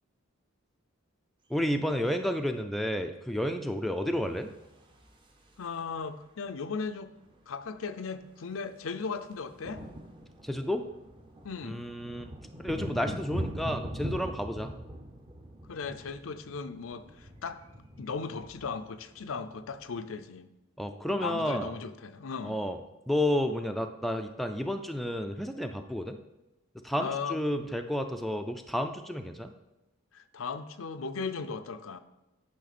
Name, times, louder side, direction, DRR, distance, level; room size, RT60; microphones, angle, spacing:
voice 1, 1.5-4.5 10.4-10.8 11.6-12.3 12.6-14.7 20.8-21.7 22.4-22.8 23.1-26.2 26.8-29.5, left 1 dB, ahead, 5 dB, 0.4 m, -31 dB
sound 1, 4.4-6.0 7.3-7.4 7.6-7.8 8.1-20.2, equal, 25° right, 0.7 m, -42 dB
voice 2, 5.6-7.1 7.5-9.8 11.4-11.8 15.7-17.6 18.0-20.5 21.1-22.6 27.0-27.4 30.1-32.0, left 5 dB, 75° left, 10 dB, 0.5 m, -37 dB
9.3 x 5.8 x 4.2 m, 0.94 s
head